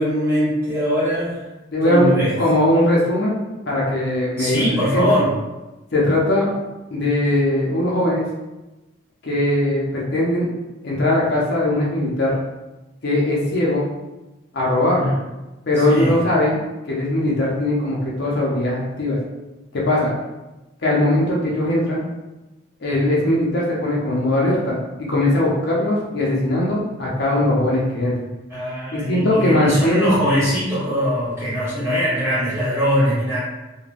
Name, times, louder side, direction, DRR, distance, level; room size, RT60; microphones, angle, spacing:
voice 1, 0.0-1.4 1.8-2.3 4.4-5.3 15.0-15.2 15.8-16.2 28.5-33.4, equal, 15° right, -10 dB, 1.2 m, -21 dB
voice 2, 1.7-3.4 3.7-5.1 5.9-6.5 6.9-8.3 9.2-10.5 10.8-12.4 13.0-13.8 14.5-15.1 15.7-16.6 16.9-19.2 19.7-20.1 20.8-22.1 22.8-28.1 28.9-30.1, left 1 dB, 55° left, -4 dB, 0.6 m, -20 dB
2.4 x 2.2 x 3.2 m, 1.1 s
head